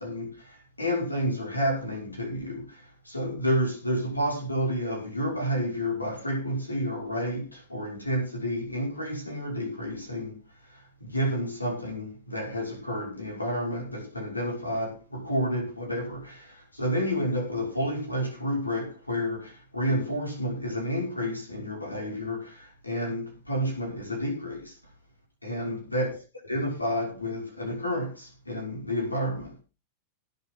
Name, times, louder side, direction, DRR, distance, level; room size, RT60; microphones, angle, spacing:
voice 1, 0.0-10.4 10.6-24.8 25.4-26.2 26.4-29.6, equal, 85° left, 5.8 m, -30 dB
19.0 x 7.7 x 4.0 m
figure-of-eight pair, 90°, 0 cm